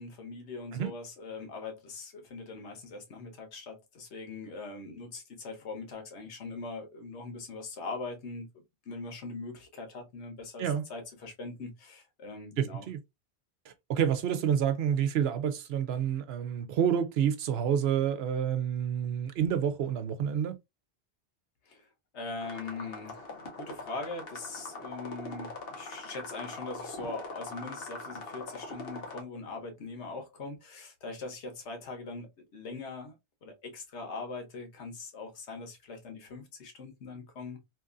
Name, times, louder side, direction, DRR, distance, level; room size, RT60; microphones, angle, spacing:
voice 1, 0.0-8.5 8.9-12.9 21.7-21.9 22.1-33.1 33.4-37.6, left 3 dB, 85° left, 1.2 m, -41 dB
voice 2, 12.6-13.0 13.7-20.6, right 8 dB, 70° right, 0.8 m, -28 dB
sound 1, 22.4-29.2, left 2 dB, 60° left, 1.1 m, -42 dB
2.8 x 2.5 x 2.4 m
omnidirectional pair, 1.1 m